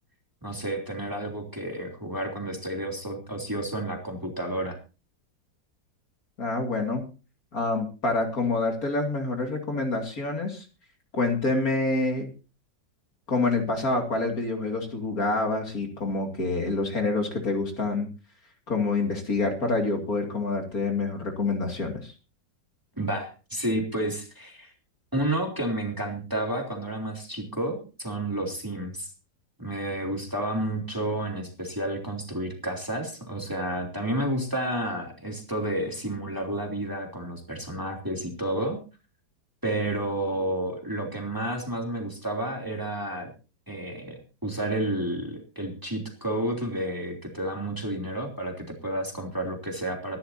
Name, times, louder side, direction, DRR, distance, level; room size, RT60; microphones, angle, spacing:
voice 1, 0.4-4.8 23.0-24.7 25.1-29.1 29.6-38.8 39.6-43.3 43.7-50.2, right 1 dB, 10° right, 2 dB, 3.1 m, -31 dB
voice 2, 6.4-7.0 7.5-10.7 11.1-12.3 13.3-18.1 18.7-22.1, left 3 dB, 50° left, 3 dB, 2.9 m, -27 dB
24.0 x 12.0 x 2.8 m, 0.32 s
omnidirectional pair, 2.0 m